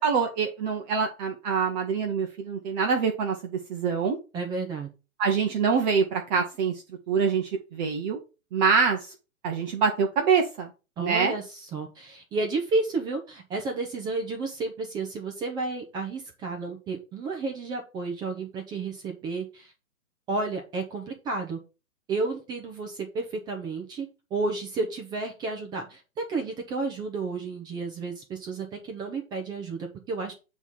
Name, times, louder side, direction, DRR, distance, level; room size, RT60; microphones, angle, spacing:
voice 1, 0.0-4.2 5.2-8.2 8.5-9.1 9.4-10.7 11.0-11.3, right 5 dB, 30° right, 2 dB, 1.0 m, -25 dB
voice 2, 4.3-4.9 11.0-19.7 20.3-21.6 22.1-30.3, right 3 dB, 10° right, 3 dB, 0.6 m, -32 dB
8.1 x 3.2 x 5.5 m, 0.31 s
hypercardioid pair, 130°, 43 cm